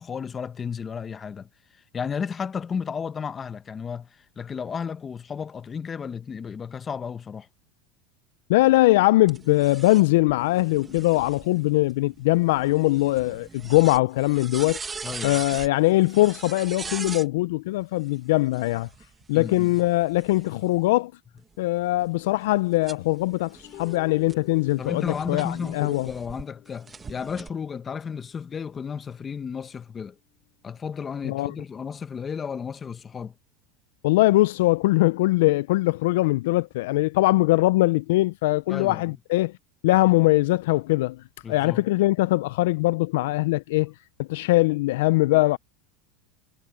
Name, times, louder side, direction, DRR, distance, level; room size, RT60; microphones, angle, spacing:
voice 1, 0.0-7.5 15.0-15.4 19.3-19.8 24.8-30.2 30.6-33.3 38.7-39.1 41.4-41.8, left 6 dB, 20° left, 0.9 m, -33 dB
voice 2, 8.5-14.8 15.2-18.9 19.3-21.1 21.6-26.1 31.2-31.5 34.0-39.5 39.8-41.2 41.5-43.9 44.2-45.6, left 19 dB, 75° left, 0.4 m, -21 dB
sound 1, 9.3-17.3 18.4-20.8 21.4-26.4 26.9-27.5, right 4 dB, 15° right, 1.2 m, -41 dB
sound 2, 23.5-30.1, left 16 dB, 50° left, 2.5 m, -49 dB
supercardioid pair, 135°, 0 cm